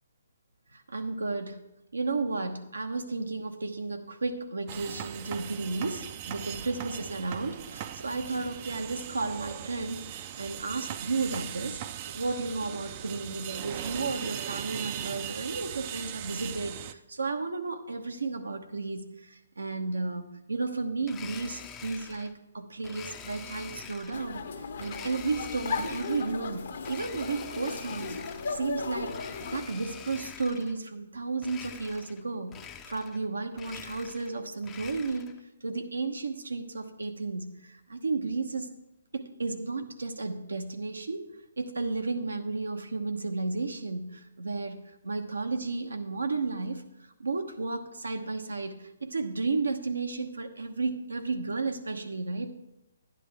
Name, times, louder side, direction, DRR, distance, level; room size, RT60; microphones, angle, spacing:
voice 1, 0.7-1.6 1.9-11.8 12.1-24.4 24.8-28.2 28.5-32.6 32.9-38.7 39.1-41.3 41.6-46.8 47.2-52.5, right 3 dB, 85° right, 6 dB, 1.1 m, -33 dB
sound 1, 4.7-16.9, right 10 dB, 35° right, 0.4 m, -39 dB
Domestic sounds home sounds, 21.0-22.3 22.8-24.3 24.8-26.4 26.8-28.6 29.0-30.8 31.4-32.2 32.5-33.3 33.5-35.4, left 8 dB, 15° left, 0.6 m, -45 dB
sound 2, 24.1-29.6, left 4 dB, 60° left, 1.1 m, -36 dB
11.0 x 10.0 x 3.5 m, 0.92 s
hypercardioid pair, 140°, 0 cm